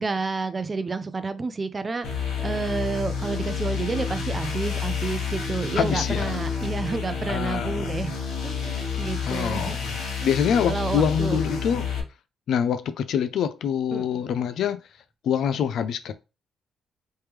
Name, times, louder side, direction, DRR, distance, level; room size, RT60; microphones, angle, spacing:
voice 1, 0.0-8.2 8.4-9.7 10.7-11.4 13.9-14.1, right 4 dB, 30° right, 0.4 m, -30 dB
sound 1, 2.0-12.0, left 6 dB, 85° left, 1.2 m, -29 dB
voice 2, 5.8-6.4 7.3-7.9 9.2-11.9 12.5-14.8 15.2-16.1, left 8 dB, 70° left, 0.4 m, -25 dB
3.2 x 3.1 x 3.4 m
cardioid pair, 90°, 0 cm